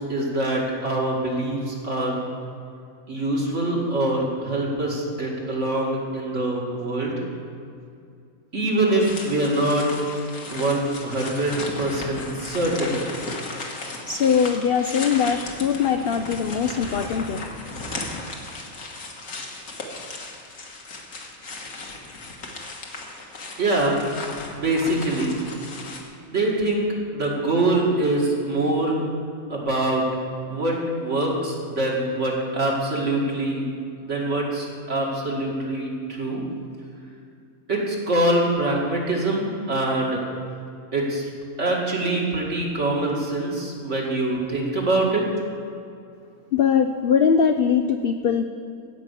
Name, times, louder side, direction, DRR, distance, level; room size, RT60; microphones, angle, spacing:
voice 1, 0.0-2.2 3.1-7.2 8.5-9.9 10.5-13.0 23.6-24.0 24.5-25.3 26.3-26.9 27.1-29.0 29.5-30.0 30.5-33.6 34.0-36.4 37.7-40.2 40.9-41.2 41.6-45.2, right 2 dB, 55° right, -3 dB, 2.4 m, -24 dB
sound 1, 9.0-26.0, left 2 dB, 80° left, 1.9 m, -36 dB
voice 2, 14.1-17.4 46.5-48.4, left 7 dB, 65° left, 7 dB, 0.6 m, -21 dB
16.0 x 5.5 x 8.2 m, 2.4 s
omnidirectional pair, 1.5 m